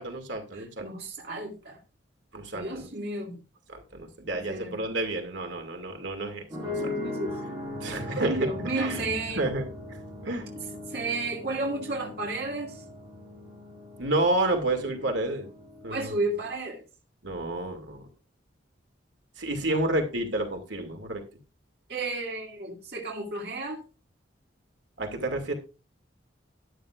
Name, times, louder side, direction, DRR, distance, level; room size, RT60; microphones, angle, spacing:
voice 1, 0.0-0.9 2.3-2.9 3.7-6.9 7.8-8.4 8.7-9.0 9.3-9.7 10.2-10.5 14.0-15.5 15.8-16.1 17.2-18.1 19.4-21.2 25.0-25.5, right 2 dB, 75° right, 4 dB, 2.5 m, -30 dB
voice 2, 0.5-1.8 2.5-3.4 4.5-4.7 6.7-7.6 8.2-9.5 10.9-12.8 15.9-16.8 19.7-19.8 21.9-23.8, right 2 dB, 55° right, 0 dB, 2.3 m, -32 dB
sound 1, 6.5-16.5, left 1 dB, 25° right, 7.0 m, -39 dB
12.5 x 11.0 x 2.5 m, 0.31 s
head